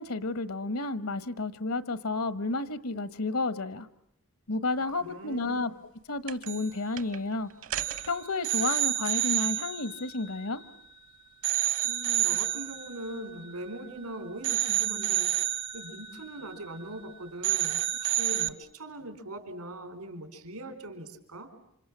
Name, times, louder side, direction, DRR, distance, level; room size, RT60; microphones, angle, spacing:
voice 1, 0.0-3.9 4.5-5.7 6.1-7.5 8.1-10.6, left 2 dB, 80° left, 13 dB, 1.2 m, -31 dB
voice 2, 5.0-5.7 11.8-21.5, right 1 dB, 90° right, 8 dB, 4.0 m, -41 dB
sound 1, 6.3-6.7 7.0-7.2 7.6-11.0 11.4-14.0 14.4-17.1 17.4-18.5, right 14 dB, 60° right, 1.0 m, -30 dB
28.0 x 27.0 x 7.3 m, 0.77 s
head